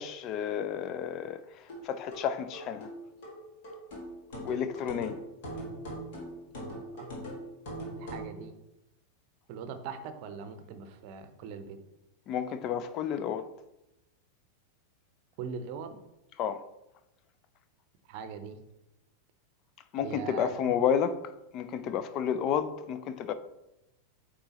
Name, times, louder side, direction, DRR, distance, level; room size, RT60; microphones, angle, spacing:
voice 1, 0.0-2.9 4.4-5.2 12.3-13.5 16.4-16.6 19.9-21.2 21.5-23.3, left 8 dB, 35° left, 0.4 m, -31 dB
sound 1, 1.7-8.3, equal, 55° left, 1.8 m, -41 dB
voice 2, 6.5-7.1 7.9-8.6 9.5-11.8 15.4-16.0 18.1-18.6 20.0-20.8, right 6 dB, 45° right, 0.7 m, -41 dB
8.8 x 3.7 x 2.9 m
figure-of-eight pair, 90°, 0 cm